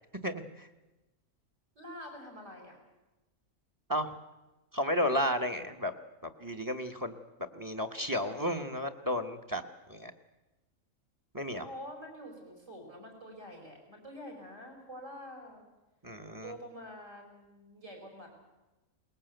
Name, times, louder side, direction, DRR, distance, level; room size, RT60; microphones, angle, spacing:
voice 1, 0.2-0.7 3.9-4.1 4.7-5.9 6.2-7.1 7.5-9.6 9.9-10.1 11.3-11.7 16.0-16.5, equal, 15° right, 7 dB, 1.2 m, -33 dB
voice 2, 1.8-2.8 11.5-15.7 16.4-18.3, equal, 65° right, 1 dB, 5.7 m, -47 dB
22.5 x 20.0 x 8.0 m, 1.1 s
omnidirectional pair, 1.4 m